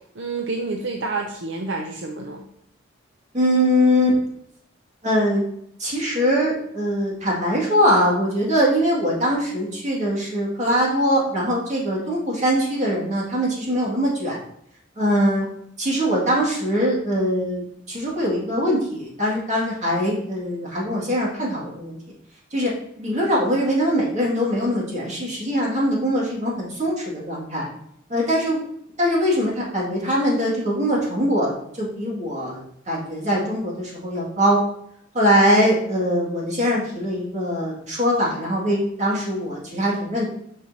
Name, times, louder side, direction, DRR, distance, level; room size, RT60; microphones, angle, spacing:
voice 1, 0.2-2.5, right 3 dB, 60° right, 2 dB, 0.5 m, -28 dB
voice 2, 3.3-4.2 5.0-5.5 5.8-14.4 15.0-15.4 15.8-22.0 22.5-22.7 23.0-27.7 28.1-28.6 29.0-34.6 35.1-40.2, equal, 35° right, -4 dB, 2.0 m, -22 dB
7.5 x 5.5 x 2.7 m, 0.72 s
head